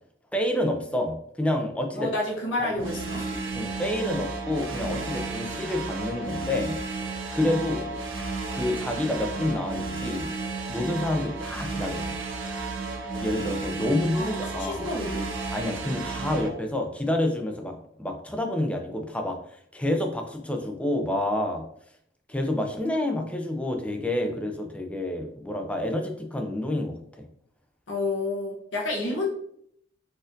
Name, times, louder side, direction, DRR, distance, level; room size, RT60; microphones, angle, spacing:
voice 1, 0.3-2.1 2.6-3.1 3.5-6.7 7.3-7.9 8.5-10.3 10.7-12.1 13.2-14.9 15.5-19.4 19.7-21.6 22.3-27.0, left 1 dB, 5° left, 4 dB, 0.4 m, -28 dB
voice 2, 2.0-3.4 14.1-14.3 14.6-15.3 27.9-29.3, left 2 dB, 70° left, -3 dB, 0.8 m, -29 dB
sound 1, 2.8-16.5, right 3 dB, 80° right, 0.6 m, -33 dB
4.1 x 2.5 x 2.6 m, 0.69 s
head